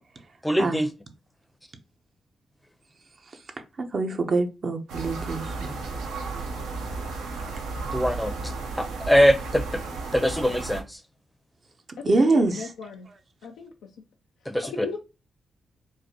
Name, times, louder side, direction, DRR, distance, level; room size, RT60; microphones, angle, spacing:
voice 1, 0.4-0.9 7.9-9.8 10.1-11.0 14.5-14.9, equal, 5° left, 0.6 m, -23 dB
voice 2, 3.9-5.7 12.0-12.5, right 3 dB, 50° right, 0.6 m, -24 dB
sound 1, 4.9-10.8, right 3 dB, 85° right, 0.7 m, -33 dB
voice 3, 12.0-12.3 12.5-13.1 13.4-13.9 14.7-15.0, left 5 dB, 80° left, 0.4 m, -36 dB
4.6 x 2.1 x 2.8 m
hypercardioid pair, 45°, 0 cm